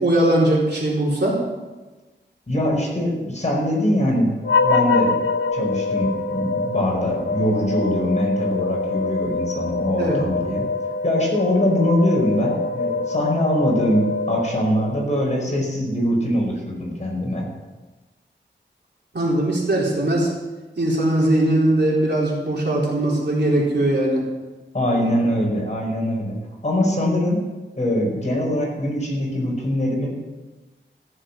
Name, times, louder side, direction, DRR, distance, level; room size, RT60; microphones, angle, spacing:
voice 1, 0.0-1.4 10.0-10.2 19.1-20.3 20.8-24.2 25.0-25.2, right 1 dB, 60° right, -4 dB, 4.3 m, -20 dB
voice 2, 2.5-4.3 4.6-5.2 5.5-10.6 11.0-17.5 24.7-26.3 26.6-27.4 27.8-30.1, left 1 dB, 35° left, -2 dB, 5.1 m, -22 dB
sound 1, 4.4-15.0, left 3 dB, 80° left, 1.1 m, -25 dB
14.5 x 7.5 x 7.7 m, 1.2 s
wide cardioid pair, 80°, 20 cm